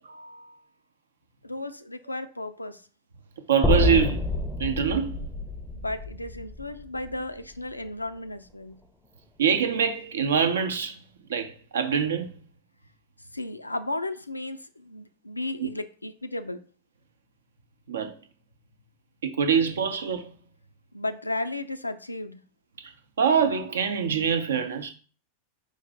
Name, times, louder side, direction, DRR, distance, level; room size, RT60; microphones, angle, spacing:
voice 1, 0.1-0.5 3.5-4.3 4.6-5.2 9.4-10.9 11.3-12.3 15.6-15.7 17.9-18.1 19.2-20.3 23.2-24.9, right 7 dB, 65° right, 0.5 m, -24 dB
voice 2, 1.4-2.8 5.7-8.8 13.3-16.6 20.9-22.4, left 2 dB, 85° left, 0.3 m, -34 dB
sound 1, 3.6-7.8, left 3 dB, 5° left, 0.5 m, -28 dB
4.8 x 2.5 x 3.5 m
figure-of-eight pair, 90°, 0 cm